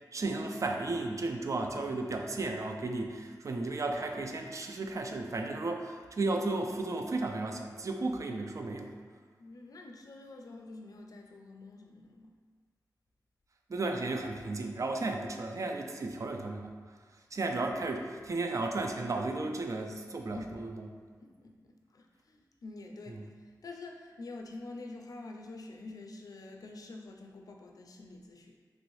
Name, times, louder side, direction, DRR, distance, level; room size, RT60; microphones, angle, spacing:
voice 1, 0.1-8.9 13.7-16.7 17.3-20.9 23.2-23.3, right 2 dB, 50° right, 3 dB, 0.4 m, -34 dB
voice 2, 9.4-12.4 20.2-20.6 21.2-28.6, left 2 dB, 60° left, 2 dB, 0.4 m, -47 dB
3.0 x 2.6 x 3.1 m, 1.6 s
cardioid pair, 45°, 7 cm